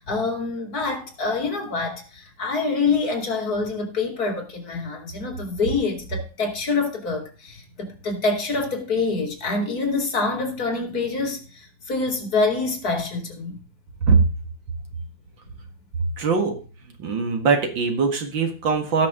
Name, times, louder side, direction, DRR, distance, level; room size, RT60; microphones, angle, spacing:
voice 1, 0.0-13.6, left 3 dB, 55° left, 3.1 m, -26 dB
voice 2, 16.2-16.6 17.0-19.1, right 5 dB, 85° right, 2.6 m, -21 dB
17.0 x 6.0 x 3.7 m
omnidirectional pair, 2.0 m